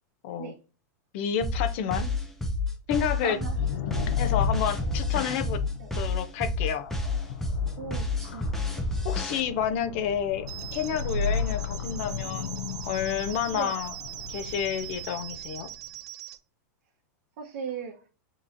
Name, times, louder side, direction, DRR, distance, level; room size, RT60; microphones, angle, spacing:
voice 1, 1.1-2.1 2.9-3.4 3.9-5.6 6.0-6.9 9.0-12.6 12.9-14.0 14.3-15.7, left 8 dB, 45° left, 0.6 m, -30 dB
sound 1, 1.4-9.4, left 3 dB, 5° left, 0.6 m, -29 dB
voice 2, 3.1-3.7 5.8-5.9 7.8-8.6 13.5-13.8 17.4-18.0, right 6 dB, 50° right, 1.0 m, -37 dB
sound 2, 3.2-15.8, left 6 dB, 80° left, 0.6 m, -34 dB
sound 3, 10.5-16.4, right 12 dB, 80° right, 0.8 m, -41 dB
6.1 x 3.0 x 2.6 m
supercardioid pair, 165°, 9 cm